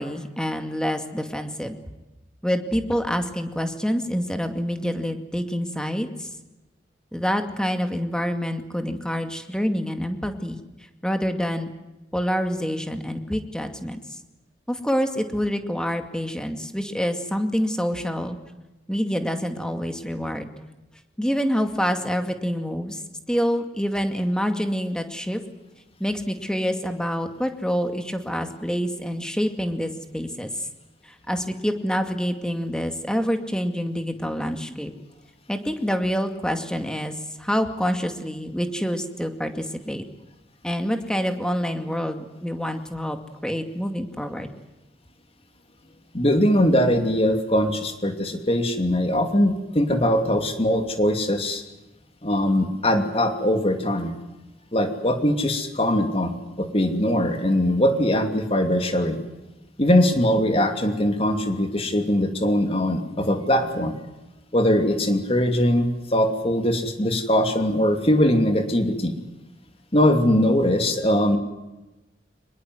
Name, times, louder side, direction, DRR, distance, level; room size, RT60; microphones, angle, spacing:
voice 1, 0.0-1.8 2.4-6.3 7.1-10.6 11.0-11.7 12.1-14.0 14.7-18.4 18.9-20.5 21.2-23.0 23.3-25.4 26.0-30.7 31.0-34.9 35.5-37.1 37.4-40.0 40.6-43.2 43.4-44.5, equal, 5° left, 6 dB, 2.3 m, -26 dB
voice 2, 46.1-51.6 52.2-54.1 54.7-59.2 59.8-63.9 64.5-69.1 69.9-71.4, left 1 dB, 35° left, 6 dB, 2.8 m, -21 dB
25.0 x 21.0 x 7.9 m, 1.0 s
head